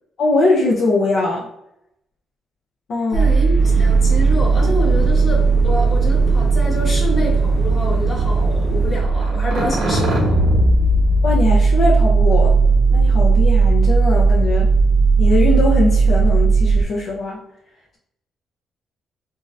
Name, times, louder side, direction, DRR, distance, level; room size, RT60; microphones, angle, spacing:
voice 1, 0.2-1.5 2.9-3.3 11.2-12.5 12.9-14.7 15.2-17.4, left 2 dB, 60° left, -4 dB, 0.6 m, -20 dB
voice 2, 3.1-10.6, left 1 dB, 35° left, -3 dB, 1.3 m, -27 dB
sound 1, 3.1-16.8, right 4 dB, 85° right, 0.9 m, -16 dB
sound 2, 3.6-9.0, equal, 15° left, 1.0 m, -28 dB
3.6 x 2.0 x 2.5 m, 0.79 s
cardioid pair, 90°, 0 cm